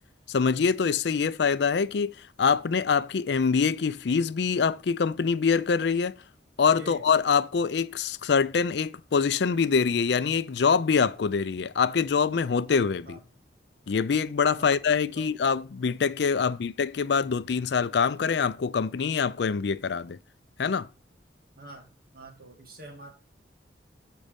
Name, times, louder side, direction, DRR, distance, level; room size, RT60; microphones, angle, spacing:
voice 1, 0.3-6.2 6.6-13.2 13.9-20.2 20.6-20.9, left 5 dB, 65° left, 0.4 m, -25 dB
voice 2, 6.6-7.1 13.1-13.2 14.5-14.8 15.1-15.3 16.4-16.7 21.6-21.9 22.1-23.1, right 1 dB, 50° right, 2.2 m, -46 dB
7.5 x 5.4 x 5.1 m
head